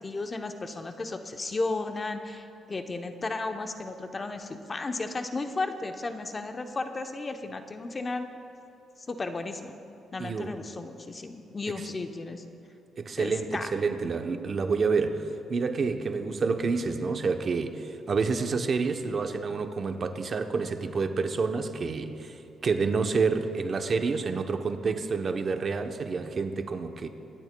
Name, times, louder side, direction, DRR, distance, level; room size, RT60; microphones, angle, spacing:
voice 1, 0.0-8.3 9.1-9.7 10.1-12.4 13.2-13.7, left 3 dB, 30° left, 6 dB, 0.8 m, -34 dB
voice 2, 10.2-10.6 11.8-11.9 13.0-27.1, right 4 dB, 45° right, 7 dB, 0.8 m, -28 dB
25.0 x 11.0 x 2.2 m, 2.7 s
cardioid pair, 90°, 0 cm